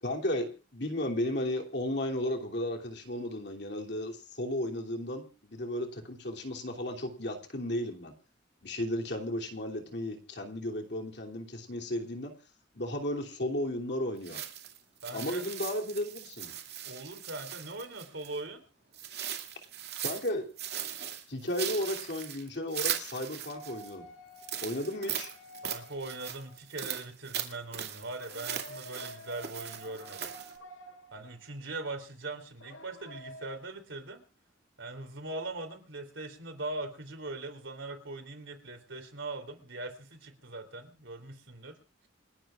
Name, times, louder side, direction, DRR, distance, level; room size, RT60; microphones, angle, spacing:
voice 1, 0.0-8.1 8.6-12.3 12.7-14.4 15.1-16.5 20.0-20.5 21.3-24.0 24.6-25.3, left 1 dB, 60° left, 1 dB, 3.0 m, -34 dB
sound 1, 14.2-18.4 18.9-20.3 20.6-23.9 24.4-30.6, right 9 dB, 55° right, 2.4 m, -39 dB
voice 2, 15.0-15.4 16.8-18.6 25.6-30.3 31.1-34.2 34.8-41.7, right 2 dB, 80° right, 6 dB, 3.4 m, -41 dB
sound 2, 23.5-27.0 28.2-31.6 32.6-33.6, equal, 85° left, 2.1 m, -49 dB
29.0 x 11.5 x 2.5 m, 0.35 s
head